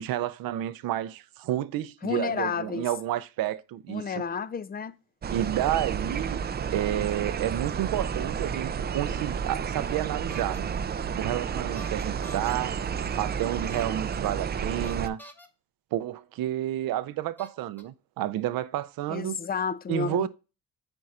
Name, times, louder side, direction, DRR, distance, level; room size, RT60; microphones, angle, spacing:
voice 1, 0.0-4.2 5.3-6.4 6.7-10.7 11.2-12.8 13.2-15.2 15.9-19.4 19.9-20.3, right 12 dB, 80° right, 0.6 m, -30 dB
voice 2, 2.0-2.9 3.9-4.9 19.1-20.3, left 6 dB, 25° left, 0.4 m, -31 dB
sound 1, 5.2-15.1, right 7 dB, 30° right, 0.4 m, -31 dB
sound 2, 10.3-10.6 11.8-12.5 13.6-14.1 14.8-15.5 16.5-16.6 17.4-17.8, left 1 dB, 5° left, 1.0 m, -47 dB
9.5 x 4.5 x 2.4 m
cardioid pair, 90°, 35 cm